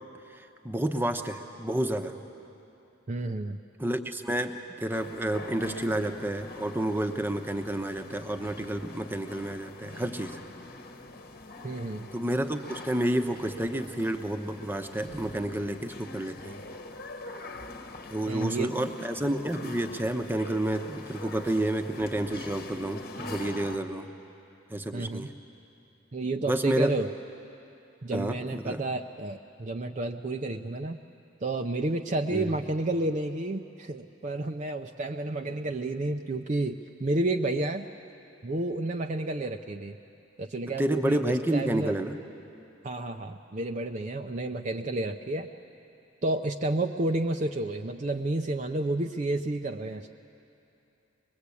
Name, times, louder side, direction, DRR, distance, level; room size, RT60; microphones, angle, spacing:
voice 1, 0.3-2.1 3.8-10.4 12.1-16.6 18.1-24.1 24.7-25.3 26.5-26.9 28.1-28.8 32.3-32.5 40.8-42.2, right 1 dB, 10° right, 6 dB, 0.8 m, -30 dB
voice 2, 3.1-3.6 11.6-12.1 18.3-18.7 24.9-25.3 26.1-27.1 28.0-31.0 31.4-37.9 38.4-40.0 40.4-41.9 42.8-45.5 46.2-50.1, right 2 dB, 35° right, 4 dB, 0.5 m, -31 dB
sound 1, 4.9-23.8, left 2 dB, 45° left, 1.2 m, -44 dB
23.0 x 21.5 x 8.4 m, 2.8 s
head